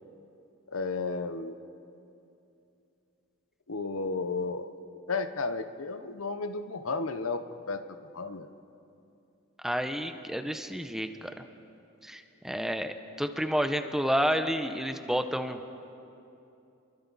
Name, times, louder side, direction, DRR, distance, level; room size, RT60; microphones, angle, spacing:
voice 1, 0.7-1.6 3.7-4.7 5.1-7.8 8.1-8.5, left 3 dB, 70° left, 9 dB, 0.9 m, -33 dB
voice 2, 9.6-11.3 12.0-15.6, equal, ahead, 7 dB, 0.8 m, -30 dB
29.5 x 23.5 x 4.1 m, 2.7 s
head